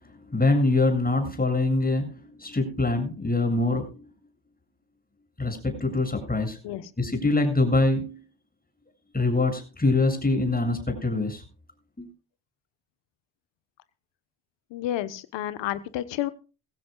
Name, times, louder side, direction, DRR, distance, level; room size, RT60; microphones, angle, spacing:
voice 1, 0.3-3.9 5.4-6.6 7.0-8.2 9.1-11.4 12.0-12.1, left 2 dB, 20° left, 5 dB, 7.6 m, -24 dB
voice 2, 14.7-16.3, left 13 dB, 70° left, 13 dB, 1.3 m, -30 dB
22.0 x 16.0 x 2.4 m, 0.33 s
hypercardioid pair, 45°, 45 cm